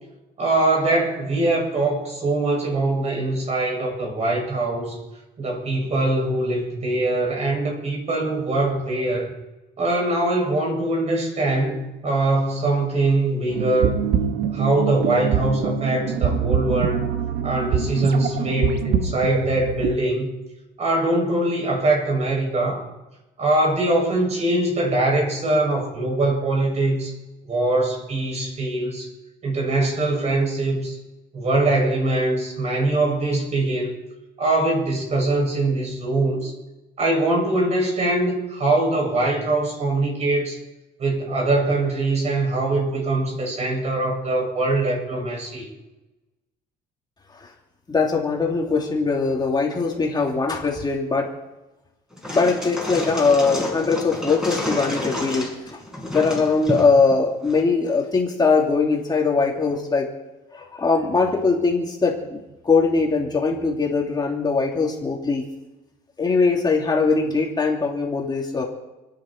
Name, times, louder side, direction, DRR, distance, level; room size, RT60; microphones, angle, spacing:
voice 1, 0.4-4.9 5.4-9.3 9.8-14.0 14.5-17.1 17.4-20.3 20.8-22.9 23.4-27.1 27.5-29.1 29.4-31.0 31.3-33.9 34.4-36.5 37.0-40.6 41.0-45.7, right 2 dB, 40° right, -1 dB, 7.5 m, -22 dB
sound 1, 13.5-20.0, right 7 dB, 80° right, 1.6 m, -24 dB
voice 2, 47.9-51.3 52.3-55.8 56.1-60.1 60.5-65.5 66.2-68.6, left 4 dB, 25° left, -1 dB, 2.8 m, -21 dB
sound 2, 52.1-57.6, left 1 dB, 5° right, 6.2 m, -30 dB
30.0 x 10.0 x 4.6 m, 1.0 s
cardioid pair, 110°, 17 cm